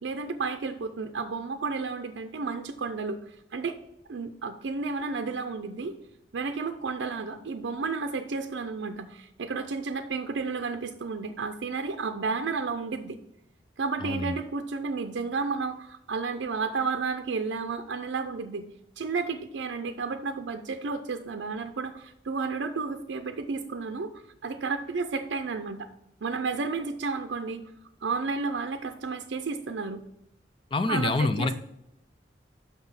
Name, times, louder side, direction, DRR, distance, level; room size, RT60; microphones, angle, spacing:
voice 1, 0.0-3.2 3.5-3.8 4.1-6.0 6.3-13.2 13.8-18.7 19.0-25.9 26.2-27.6 28.0-30.0 30.9-31.6, right 4 dB, 85° right, 7 dB, 0.5 m, -32 dB
voice 2, 30.7-31.6, left 3 dB, 30° left, 11 dB, 0.4 m, -26 dB
5.9 x 5.7 x 5.6 m, 0.83 s
head